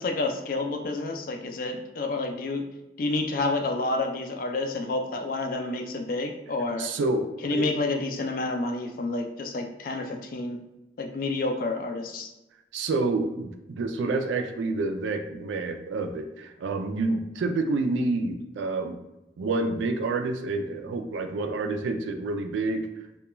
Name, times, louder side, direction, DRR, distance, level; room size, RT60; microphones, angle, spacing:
voice 1, 0.0-2.7 3.0-6.9 7.4-10.6 11.0-12.3, left 2 dB, 50° left, 4 dB, 0.3 m, -29 dB
voice 2, 6.8-7.7 12.7-19.0 19.4-22.9, right 3 dB, 90° right, 6 dB, 0.3 m, -28 dB
2.2 x 2.2 x 2.9 m, 0.93 s
head